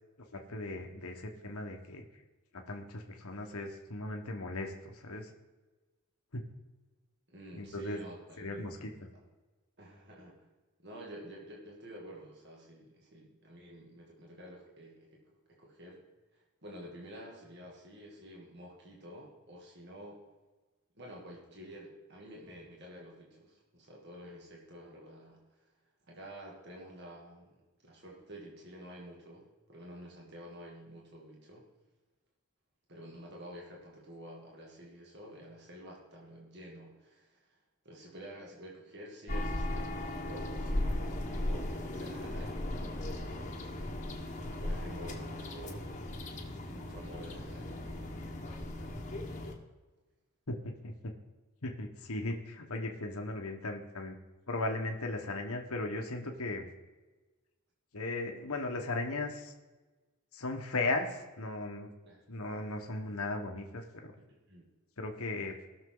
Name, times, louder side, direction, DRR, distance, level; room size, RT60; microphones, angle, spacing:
voice 1, 0.3-2.0 2.7-5.3 6.3-6.5 7.5-8.0 8.4-8.9 50.5-51.1 51.6-54.2 54.5-56.7 57.9-59.5 60.3-61.9 62.3-64.2 65.0-65.6, left 2 dB, 75° left, 3 dB, 1.3 m, -37 dB
voice 2, 7.3-9.2 9.8-10.5 10.8-15.2 15.6-16.0 16.3-20.2 21.0-25.7 26.1-27.6 27.8-31.6 32.9-37.6 37.8-43.9 44.4-46.1 46.7-48.2 62.0-62.2 64.3-64.6, equal, 50° right, -2 dB, 2.3 m, -50 dB
sound 1, 39.3-49.5, left 1 dB, 30° left, 1.3 m, -37 dB
19.0 x 6.6 x 3.9 m, 1.2 s
head